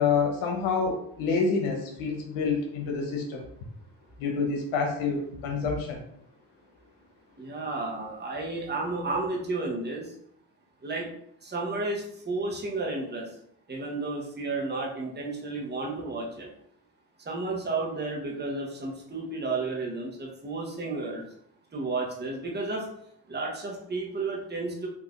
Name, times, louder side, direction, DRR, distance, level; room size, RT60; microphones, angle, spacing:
voice 1, 0.0-3.4 4.2-6.0, left 5 dB, 85° left, 1 dB, 0.8 m, -27 dB
voice 2, 7.4-10.1 10.8-11.1 11.4-13.3 13.7-16.5 17.3-21.2 21.7-22.9 23.3-24.9, right 3 dB, 20° right, -1 dB, 0.9 m, -32 dB
3.4 x 2.5 x 2.4 m, 0.71 s
supercardioid pair, 55°, 47 cm